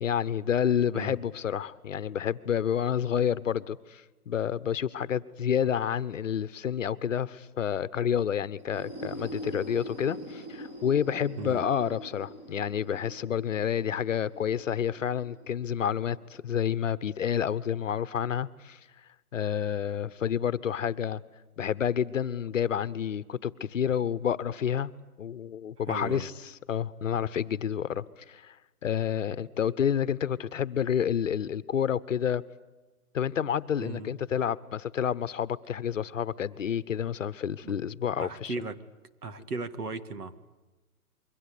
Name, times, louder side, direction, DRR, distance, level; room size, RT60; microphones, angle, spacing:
voice 1, 0.0-18.8 19.3-21.2 21.6-24.9 25.2-28.5 28.8-32.4 33.1-38.5, left 8 dB, 55° left, 16 dB, 1.0 m, -29 dB
sound 1, 8.6-16.2, right 1 dB, 15° right, 1.9 m, -43 dB
voice 2, 25.9-26.3 33.8-34.1 37.6-37.7 38.2-38.8 39.2-40.4, right 3 dB, 85° right, 11 dB, 2.2 m, -36 dB
28.0 x 23.5 x 8.5 m, 1.1 s
hypercardioid pair, 160°, 45 cm